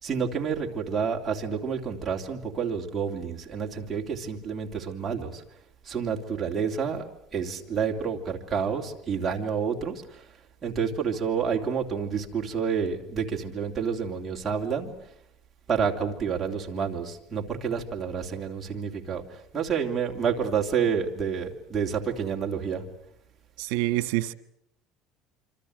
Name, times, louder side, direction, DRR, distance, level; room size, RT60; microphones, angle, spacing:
voice 1, 0.0-5.4 5.9-10.2 10.6-14.9 15.7-19.2 19.5-22.8, right 6 dB, 15° right, 2.9 m, -29 dB
voice 2, 23.6-24.3, right 17 dB, 75° right, 1.5 m, -26 dB
26.5 x 26.0 x 8.0 m
cardioid pair, 175°, 0 cm